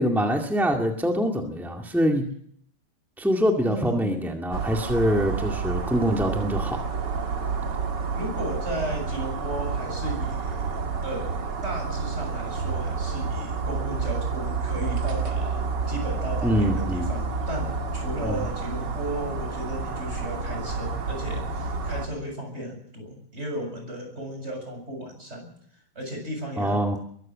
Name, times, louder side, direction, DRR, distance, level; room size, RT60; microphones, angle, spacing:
voice 1, 0.0-2.3 3.2-6.8 16.4-17.1 18.2-18.4 26.6-27.0, equal, ahead, 2 dB, 1.1 m, -24 dB
voice 2, 3.7-4.3 8.1-25.5 26.0-27.0, right 1 dB, 15° right, 3 dB, 7.4 m, -35 dB
sound 1, 4.5-22.1, right 4 dB, 40° right, 2.0 m, -29 dB
22.5 x 15.5 x 7.5 m, 0.66 s
omnidirectional pair, 3.9 m